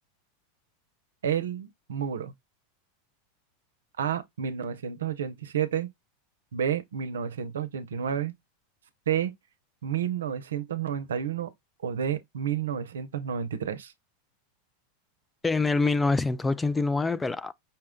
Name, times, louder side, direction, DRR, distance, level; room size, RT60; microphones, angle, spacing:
voice 1, 1.2-2.3 4.0-5.9 6.5-8.3 9.1-9.3 9.8-11.5 11.8-13.9, right 8 dB, 90° right, 0.6 m, -30 dB
voice 2, 15.4-17.5, left 3 dB, 10° left, 0.3 m, -25 dB
5.6 x 2.2 x 3.6 m
hypercardioid pair, 110°, 0 cm